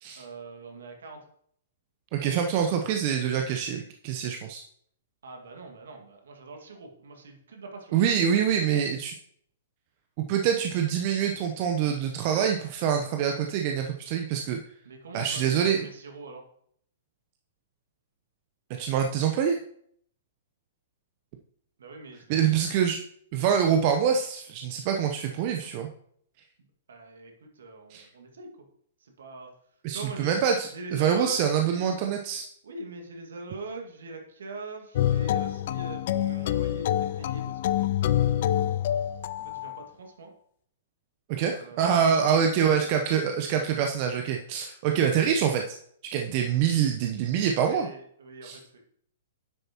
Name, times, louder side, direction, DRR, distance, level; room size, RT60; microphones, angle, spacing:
voice 1, 0.2-1.2 5.2-8.0 14.8-16.4 21.8-22.5 25.5-25.7 26.9-28.5 29.0-29.5 29.9-30.3 30.7-32.0 32.6-38.7 39.4-40.3 41.4-43.0 47.6-48.8, right 3 dB, 70° right, 3 dB, 2.0 m, -43 dB
voice 2, 2.1-4.6 7.9-9.1 10.2-14.6 15.1-15.9 18.8-19.6 22.3-23.0 23.3-25.9 27.9-28.1 29.8-32.5 41.3-45.8 46.1-47.9 48.4-48.6, right 8 dB, 40° right, 4 dB, 0.8 m, -25 dB
sound 1, 35.0-39.8, left 11 dB, 50° left, 0.4 m, -26 dB
10.0 x 7.9 x 3.0 m, 0.65 s
figure-of-eight pair, 115°, 0 cm